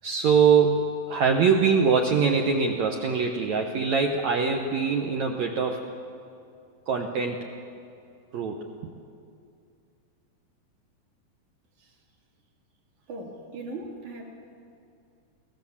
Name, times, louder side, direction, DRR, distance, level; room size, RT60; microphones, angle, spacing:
voice 1, 0.0-5.8 6.9-7.5 8.3-8.9, right 5 dB, 70° right, 2 dB, 1.7 m, -23 dB
voice 2, 13.1-14.2, right 2 dB, 50° right, 0 dB, 3.8 m, -38 dB
22.5 x 17.0 x 7.2 m, 2.5 s
omnidirectional pair, 4.6 m